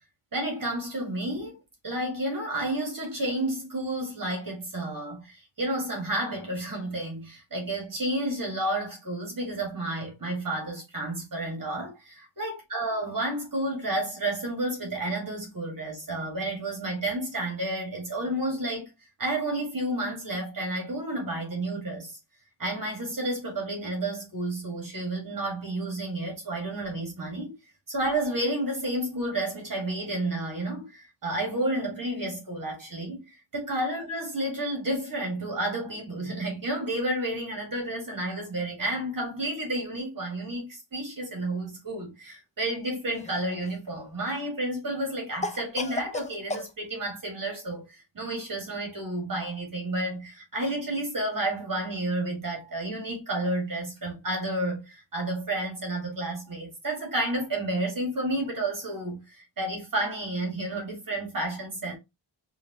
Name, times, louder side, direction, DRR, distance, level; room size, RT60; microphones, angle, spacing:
voice 1, 0.3-1.6 1.8-18.9 19.2-22.2 22.6-27.5 27.9-61.9, right 1 dB, 45° right, 2.1 m, -31 dB
Cough, 43.1-43.9 45.4-46.7, left 3 dB, 15° left, 0.5 m, -34 dB
4.8 x 2.7 x 3.0 m
wide cardioid pair, 130°, 45 cm